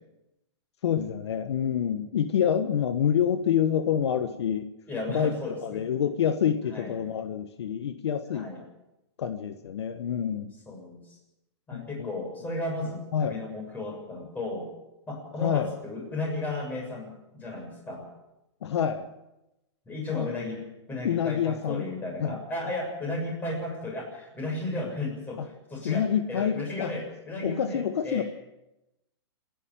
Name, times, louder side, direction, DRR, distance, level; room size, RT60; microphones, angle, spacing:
voice 1, 0.8-4.7 5.1-5.3 5.6-8.5 9.2-10.5 11.7-12.1 13.1-13.4 15.4-15.7 18.6-19.1 20.1-20.3 21.0-21.8 22.2-22.4 25.4-25.5 25.8-26.9 27.4-28.2, left 8 dB, 70° left, 9 dB, 1.4 m, -27 dB
voice 2, 4.9-5.8 6.7-7.0 8.3-8.6 10.7-11.2 11.7-14.7 15.1-18.1 19.9-28.2, left 2 dB, 10° left, 0 dB, 7.1 m, -34 dB
28.0 x 11.0 x 8.8 m, 0.92 s
hypercardioid pair, 150°, 14 cm